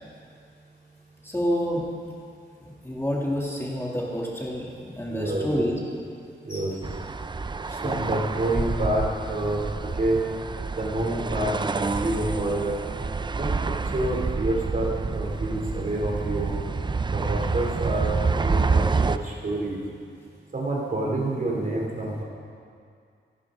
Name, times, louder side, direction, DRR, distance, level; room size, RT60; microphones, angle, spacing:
voice 1, 1.2-1.9 2.6-5.8 6.5-6.7 7.7-8.1, equal, 15° left, -4 dB, 2.4 m, -29 dB
voice 2, 5.1-5.5 6.4-6.7 7.8-9.6 10.0-10.2 10.8-12.7 13.3-16.6 17.1-18.1 18.4-19.8 20.5-22.2, right 1 dB, 45° right, -2 dB, 2.8 m, -28 dB
sound 1, 6.8-19.2, right 4 dB, 25° right, 0.4 m, -28 dB
26.0 x 12.5 x 3.7 m, 2.3 s
wide cardioid pair, 155°, 19 cm